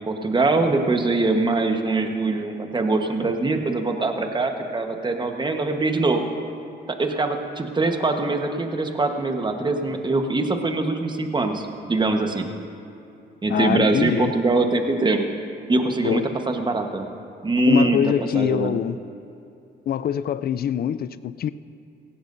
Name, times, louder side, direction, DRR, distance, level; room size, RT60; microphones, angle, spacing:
voice 1, 0.0-6.2 6.9-12.5 13.4-15.3 15.7-17.1 17.4-18.7, right 2 dB, 25° right, 4 dB, 1.2 m, -23 dB
voice 2, 13.5-14.3 16.0-16.3 17.7-19.0 19.9-21.5, left 9 dB, 50° left, 15 dB, 0.4 m, -24 dB
17.0 x 16.0 x 2.7 m, 2.6 s
cardioid pair, 90°, 20 cm